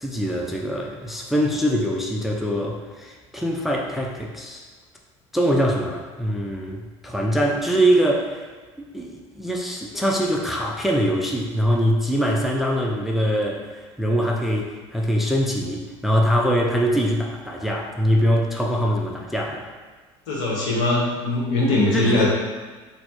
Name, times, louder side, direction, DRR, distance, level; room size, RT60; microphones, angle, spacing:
voice 1, 0.0-4.6 5.3-8.5 8.9-19.7 21.9-22.3, equal, ahead, -1 dB, 0.4 m, -23 dB
voice 2, 20.3-22.3, left 2 dB, 70° left, -4 dB, 0.9 m, -21 dB
4.1 x 2.0 x 2.9 m, 1.4 s
hypercardioid pair, 70°, 15 cm